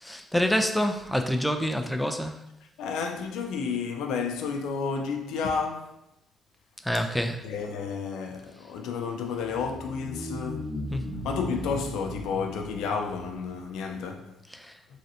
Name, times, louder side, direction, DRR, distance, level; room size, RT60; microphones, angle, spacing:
voice 1, 0.0-2.4 6.8-7.4 10.9-11.0 14.5-14.7, equal, 5° left, 0.3 m, -27 dB
voice 2, 2.8-6.0 7.4-10.7 11.2-14.3, left 5 dB, 90° left, 0.3 m, -31 dB
sound 1, 9.4-13.7, left 1 dB, 20° right, 1.1 m, -37 dB
3.2 x 2.6 x 2.7 m
cardioid pair, 90°, 0 cm